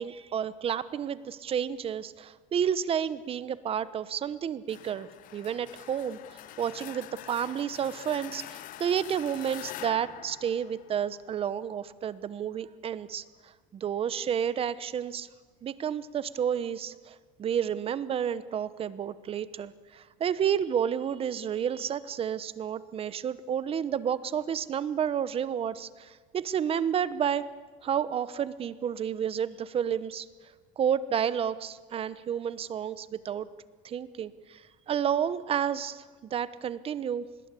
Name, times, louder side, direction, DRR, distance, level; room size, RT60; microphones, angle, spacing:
voice 1, 0.0-15.3 15.6-27.4 27.8-30.3 30.8-33.5 33.8-37.3, right 8 dB, 30° right, 15 dB, 1.0 m, -31 dB
sound 1, 4.7-11.4, left 14 dB, 50° left, 0.9 m, -45 dB
27.0 x 21.0 x 8.4 m, 1.4 s
cardioid pair, 130°, 18 cm